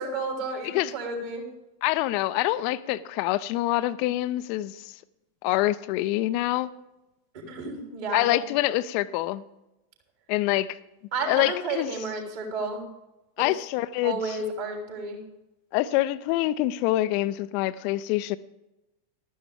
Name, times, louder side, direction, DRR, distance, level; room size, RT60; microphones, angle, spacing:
voice 1, 0.0-1.4 7.5-8.3 11.1-12.9 13.4-13.5 14.0-15.2, right 3 dB, 55° right, 3.4 m, -32 dB
voice 2, 1.8-4.9 5.4-6.7 8.1-9.4 10.3-10.8 11.3-11.9 13.4-14.4 15.7-18.4, left 16 dB, 45° left, 0.5 m, -26 dB
15.0 x 12.0 x 3.5 m
figure-of-eight pair, 90°, 0 cm